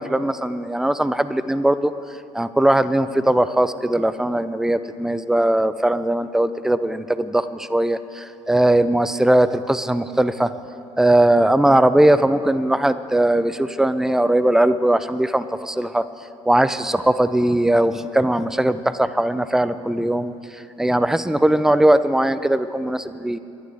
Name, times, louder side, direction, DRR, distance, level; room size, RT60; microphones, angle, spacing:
voice 1, 0.0-1.9 2.3-10.5 11.0-16.0 16.5-23.4, right 1 dB, 5° right, 14 dB, 0.5 m, -19 dB
22.5 x 11.5 x 3.5 m, 2.8 s
hypercardioid pair, 60°, 16 cm